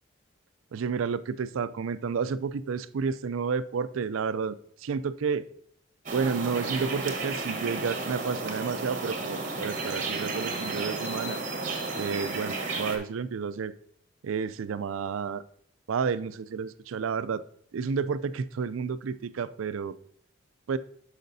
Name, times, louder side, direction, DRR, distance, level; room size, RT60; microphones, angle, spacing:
voice 1, 0.7-5.4 6.1-11.4 12.0-13.7 14.2-15.4 15.9-17.4 17.7-19.9 20.7-20.8, right 6 dB, 85° right, 15 dB, 0.4 m, -31 dB
sound 1, 6.1-13.0, right 3 dB, 40° right, 1.1 m, -33 dB
12.0 x 5.0 x 2.7 m, 0.67 s
head